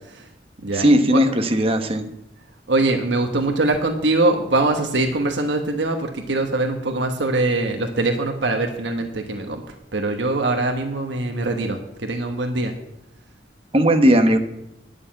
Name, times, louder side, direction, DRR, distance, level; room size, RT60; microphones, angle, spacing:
voice 1, 0.7-2.1 13.7-14.4, equal, 30° right, 7 dB, 1.1 m, -17 dB
voice 2, 2.7-9.6 9.9-12.7, right 2 dB, 80° right, 4 dB, 1.3 m, -22 dB
9.6 x 6.8 x 9.0 m, 0.84 s
head